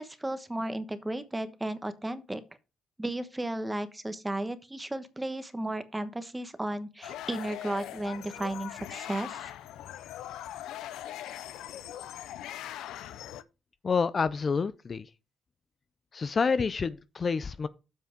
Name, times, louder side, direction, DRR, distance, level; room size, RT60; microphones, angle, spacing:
voice 1, 0.0-2.4 3.0-9.5, right 1 dB, 10° right, 1.1 m, -34 dB
sound 1, 7.0-13.4, left 12 dB, 85° left, 0.5 m, -41 dB
voice 2, 13.8-15.1 16.1-17.7, left 5 dB, 40° left, 0.5 m, -28 dB
7.4 x 5.6 x 5.1 m
cardioid pair, 90°, 0 cm